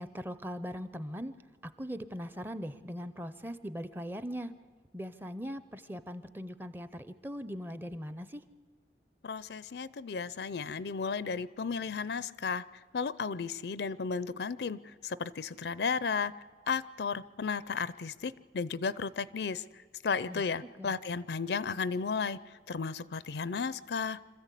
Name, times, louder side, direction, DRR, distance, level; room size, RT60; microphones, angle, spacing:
voice 1, 0.0-1.3 1.8-4.5 4.9-8.4 20.3-20.4 20.8-20.9, equal, 10° right, 12 dB, 0.6 m, -40 dB
voice 2, 9.2-12.6 12.9-16.3 16.7-19.6 20.0-22.4 22.7-24.2, left 5 dB, 70° left, 17 dB, 0.5 m, -34 dB
26.0 x 14.0 x 8.3 m, 1.6 s
head